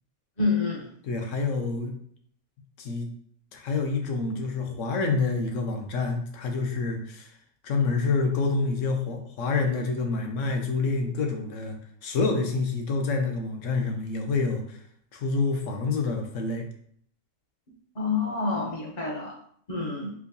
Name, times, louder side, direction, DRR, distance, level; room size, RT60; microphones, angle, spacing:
voice 1, 0.4-0.9 17.9-19.3 19.7-20.1, left 4 dB, 40° left, -3 dB, 0.6 m, -27 dB
voice 2, 1.0-1.9 2.8-3.1 3.5-7.4 7.6-14.8 15.1-16.7, left 4 dB, 70° left, 3 dB, 0.9 m, -27 dB
4.5 x 2.2 x 2.6 m, 0.64 s
omnidirectional pair, 1.5 m